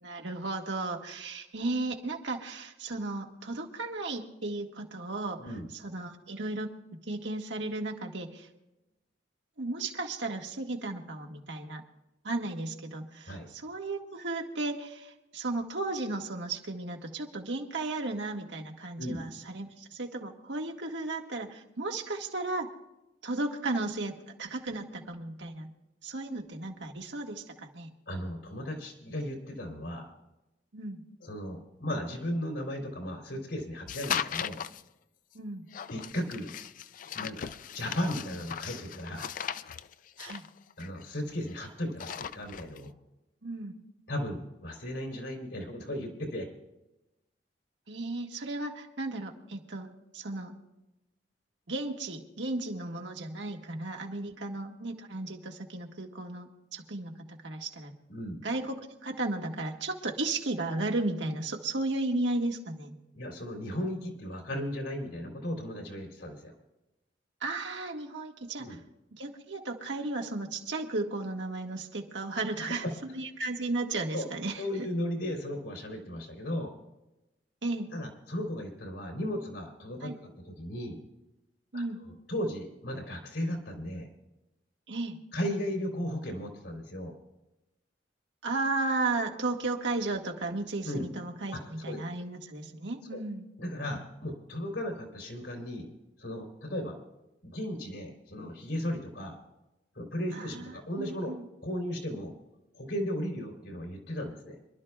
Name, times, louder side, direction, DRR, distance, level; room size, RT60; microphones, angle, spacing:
voice 1, 0.0-5.4 5.7-6.7 7.1-8.5 9.6-11.8 12.2-22.7 23.2-25.7 26.0-27.9 30.7-31.0 35.3-35.7 40.2-40.4 43.4-43.8 47.9-50.6 51.7-58.0 58.4-63.0 67.4-68.8 69.1-74.6 77.6-77.9 80.0-80.2 81.7-82.0 84.9-85.2 88.4-93.5 100.3-101.5, right 2 dB, 85° right, 2 dB, 1.6 m, -34 dB
voice 2, 28.1-30.1 31.2-34.6 35.9-36.5 37.1-37.5 37.7-39.3 40.8-42.9 44.1-46.5 58.1-58.4 63.1-66.5 68.6-68.8 72.8-72.9 74.1-74.3 74.6-76.7 77.9-81.0 81.7-84.1 85.3-87.2 90.8-91.1 91.5-92.0 93.1-93.2 93.6-95.9 96.2-97.0 97.4-99.4 99.9-101.3 101.6-102.3 102.7-104.6, equal, 80° left, 0 dB, 3.5 m, -36 dB
sound 1, 33.9-34.8 35.7-41.5 41.8-42.8, left 8 dB, 45° left, 0.4 m, -38 dB
26.5 x 12.0 x 2.4 m, 0.97 s
head